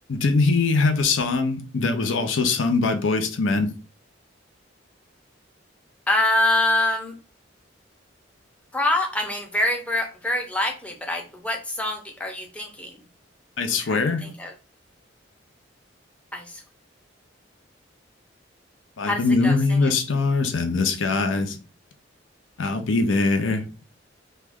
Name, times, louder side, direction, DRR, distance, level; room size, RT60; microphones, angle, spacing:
voice 1, 0.1-3.7 13.6-14.3 19.0-21.6 22.6-23.6, left 3 dB, 80° left, 0.6 m, -22 dB
voice 2, 6.1-7.1 8.7-13.0 13.8-14.5 16.3-16.6 19.1-19.9, left 1 dB, 5° left, 0.6 m, -25 dB
3.1 x 2.3 x 3.5 m
head